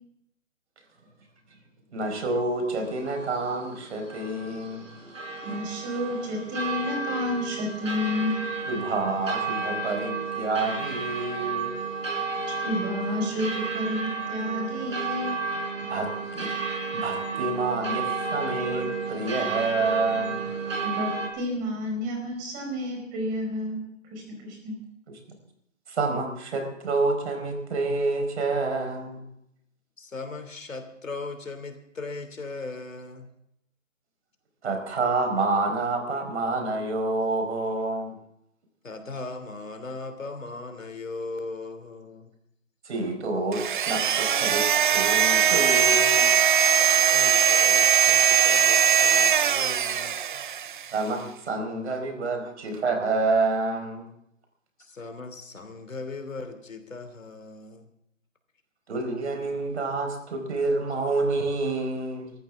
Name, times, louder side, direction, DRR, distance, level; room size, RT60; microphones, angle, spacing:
voice 1, 1.9-4.9 8.7-11.7 15.8-16.5 16.9-20.4 25.9-29.2 34.6-38.2 42.8-46.3 50.9-54.1 58.9-62.3, right 3 dB, 60° right, 5 dB, 4.7 m, -28 dB
sound 1, 2.7-21.3, right 4 dB, 80° right, 5.3 m, -32 dB
voice 2, 5.4-8.4 12.6-15.4 20.8-24.8, left 1 dB, 20° right, 1 dB, 4.8 m, -30 dB
voice 3, 30.0-33.3 38.8-42.3 47.0-50.1 54.8-57.9, left 3 dB, 90° left, 8 dB, 3.0 m, -38 dB
sound 2, 43.5-50.9, right 8 dB, 40° right, 0.6 m, -20 dB
23.5 x 14.0 x 3.7 m, 0.77 s
hypercardioid pair, 150°, 38 cm